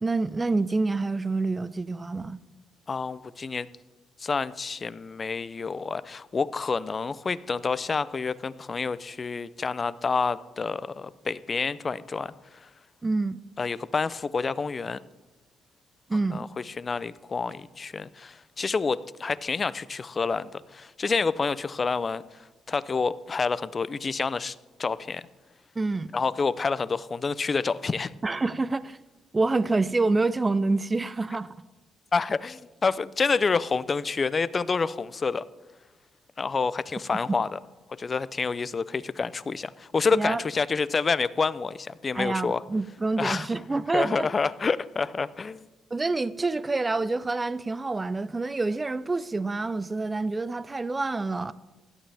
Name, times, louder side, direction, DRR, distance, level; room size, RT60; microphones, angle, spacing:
voice 1, 0.0-2.4 13.0-13.4 16.1-16.5 25.8-26.1 28.2-29.0 29.3-31.5 37.3-37.4 40.1-40.4 42.1-44.3 45.9-51.5, right 3 dB, 25° right, 0.5 m, -27 dB
voice 2, 2.9-3.7 4.2-12.7 13.6-15.0 16.3-25.3 26.1-28.1 32.1-35.4 36.4-37.6 38.0-42.6 43.2-43.5 43.9-45.6, left 4 dB, 35° left, 0.5 m, -28 dB
16.5 x 11.5 x 3.4 m
cardioid pair, 90°, 0 cm